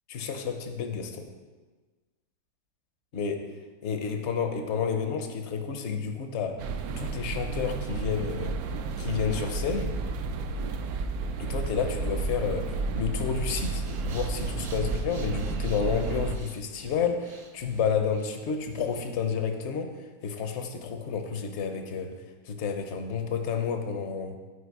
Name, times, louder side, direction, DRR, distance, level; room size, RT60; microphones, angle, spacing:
voice 1, 0.1-1.3 3.1-3.5 3.8-6.6 7.0-8.6 9.0-10.0 11.4-24.4, left 6 dB, 50° left, 6 dB, 0.9 m, -30 dB
sound 1, 6.6-16.4, right 3 dB, 65° right, 1.0 m, -32 dB
Breathing, 13.4-19.4, right 3 dB, 45° right, 0.7 m, -48 dB
12.0 x 4.9 x 4.8 m, 1.3 s
omnidirectional pair, 1.9 m